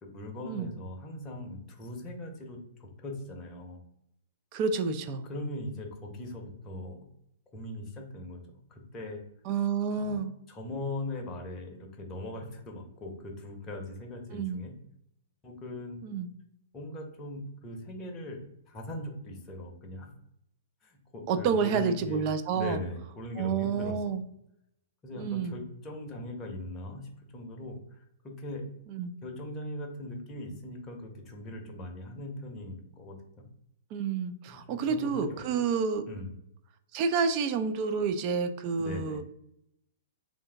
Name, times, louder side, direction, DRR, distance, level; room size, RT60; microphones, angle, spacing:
voice 1, 0.0-3.8 5.3-7.1 7.5-8.4 8.7-9.2 10.0-10.2 10.5-14.7 15.4-16.0 16.7-20.1 20.8-22.2 22.5-24.2 25.0-28.7 29.2-33.5 34.5-35.5 36.1-36.3 38.8-39.2, left 1 dB, 20° left, 1 dB, 0.8 m, -40 dB
voice 2, 4.5-5.3 9.4-10.3 14.3-14.6 16.0-16.3 21.3-22.8 23.4-24.2 25.2-25.6 28.9-29.1 33.9-36.0 36.9-39.2, right 5 dB, 35° right, 9 dB, 0.4 m, -29 dB
3.5 x 2.6 x 3.3 m, 0.76 s
figure-of-eight pair, 110°, 0 cm